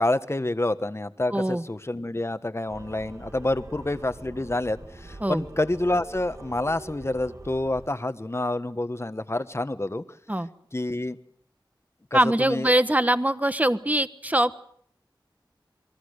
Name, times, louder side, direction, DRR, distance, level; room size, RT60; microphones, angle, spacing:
voice 1, 0.0-10.0 10.7-11.2 12.1-12.7, left 2 dB, 30° left, 11 dB, 1.3 m, -28 dB
voice 2, 1.3-1.6 5.2-5.4 10.3-10.5 12.1-14.6, right 1 dB, 20° right, 12 dB, 1.3 m, -23 dB
sound 1, 2.7-7.9, right 1 dB, 40° right, 2.1 m, -44 dB
29.0 x 21.5 x 6.6 m, 0.64 s
wide cardioid pair, 50°, 8 cm